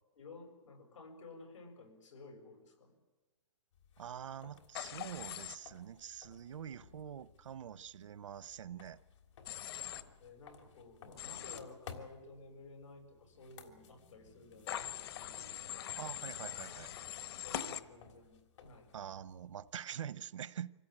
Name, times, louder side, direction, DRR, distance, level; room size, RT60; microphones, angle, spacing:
voice 1, 0.1-2.9 10.2-15.9 17.4-18.9, left 3 dB, 90° left, 5 dB, 7.0 m, -54 dB
sound 1, 3.7-19.8, left 6 dB, 75° left, 3.3 m, -58 dB
voice 2, 4.0-9.0 16.0-16.9 18.9-20.7, right 9 dB, 85° right, 17 dB, 0.9 m, -45 dB
Human voice / Train, 4.7-5.6 9.5-10.0 11.2-11.6 14.7-17.8, left 11 dB, 55° left, 1.3 m, -42 dB
25.5 x 16.5 x 8.9 m, 1.2 s
hypercardioid pair, 160°, 16 cm